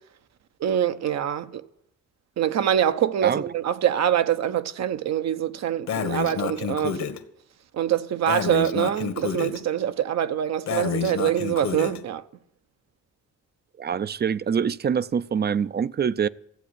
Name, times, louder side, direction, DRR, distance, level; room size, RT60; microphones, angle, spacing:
voice 1, 0.6-1.6 2.4-7.0 7.7-12.2, right 10 dB, 60° right, 0.9 m, -24 dB
Breathing, 5.9-7.2 8.3-9.6 10.7-12.0, left 7 dB, 65° left, 1.6 m, -29 dB
voice 2, 13.8-16.3, right 7 dB, 35° right, 0.5 m, -25 dB
14.5 x 8.0 x 10.0 m
cardioid pair, 90°, 30 cm